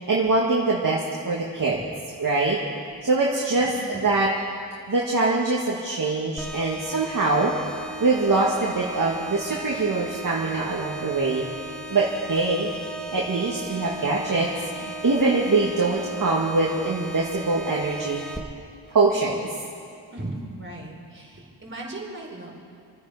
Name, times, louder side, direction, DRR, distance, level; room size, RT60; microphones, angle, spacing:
voice 1, 0.1-1.8 2.2-2.6 3.0-4.3 4.9-7.5 8.0-11.5 11.9-12.7 13.1-14.5 14.8-18.2 18.9-19.5, right 3 dB, 50° right, -4 dB, 2.0 m, -23 dB
sound 1, 6.4-18.4, right 2 dB, ahead, 1.6 m, -37 dB
voice 2, 20.1-22.6, right 2 dB, 30° right, -3 dB, 4.7 m, -37 dB
28.5 x 9.7 x 5.0 m, 2.4 s
cardioid pair, 65°, 42 cm